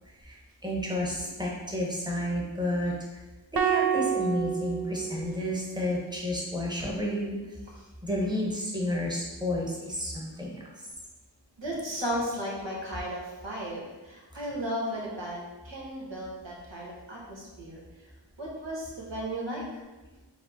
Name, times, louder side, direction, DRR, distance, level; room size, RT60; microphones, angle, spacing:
voice 1, 0.2-2.9 3.5-7.4 8.0-10.6, left 1 dB, 10° right, -3 dB, 1.1 m, -31 dB
sound 1, 3.6-5.9, right 8 dB, 50° right, 0.5 m, -29 dB
voice 2, 11.6-17.8 18.4-19.8, equal, 75° right, -4 dB, 1.3 m, -35 dB
4.9 x 2.1 x 4.1 m, 1.2 s
wide cardioid pair, 45°, 45 cm